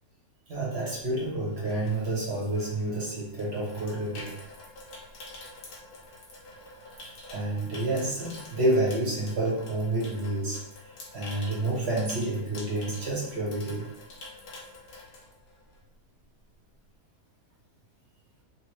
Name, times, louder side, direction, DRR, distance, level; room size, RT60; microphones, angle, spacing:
voice 1, 0.5-4.4 7.3-10.6 11.1-13.9, right 2 dB, 45° right, -5 dB, 1.4 m, -29 dB
Water tap faucet / Sink (filling or washing), 1.4-15.9 16.2-16.5, left 2 dB, 85° left, 1.5 m, -47 dB
3.6 x 3.2 x 3.1 m, 0.77 s
omnidirectional pair, 1.7 m